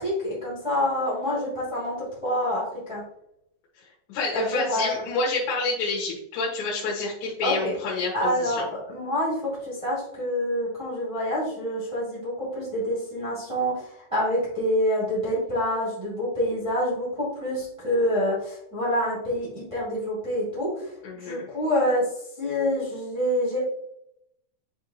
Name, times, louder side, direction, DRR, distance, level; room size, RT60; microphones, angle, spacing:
voice 1, 0.0-1.9 2.2-3.0 4.3-4.9 7.4-7.7 8.1-13.8 14.1-20.9 21.2-22.0 22.4-23.6, equal, 45° right, -8 dB, 0.4 m, -27 dB
voice 2, 3.8-8.7 21.0-21.5, left 3 dB, 70° left, -4 dB, 3.3 m, -29 dB
10.0 x 3.6 x 2.8 m, 0.78 s
omnidirectional pair, 5.4 m